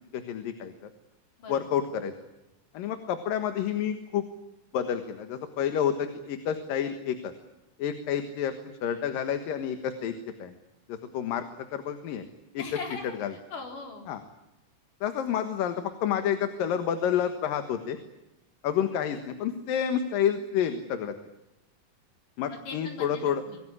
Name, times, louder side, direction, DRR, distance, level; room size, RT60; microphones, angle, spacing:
voice 1, 0.1-0.9 1.5-2.1 2.7-4.2 4.7-7.3 7.8-10.1 10.4-10.6 10.9-12.2 12.5-12.6 13.2-13.3 14.1-14.2 15.0-18.0 18.6-21.1 22.4-23.4, left 9 dB, 85° left, 8 dB, 3.2 m, -29 dB
voice 2, 12.6-13.1 13.5-14.1 22.5-23.6, left 4 dB, 70° left, 3 dB, 5.8 m, -40 dB
25.5 x 18.5 x 10.0 m, 0.93 s
omnidirectional pair, 3.8 m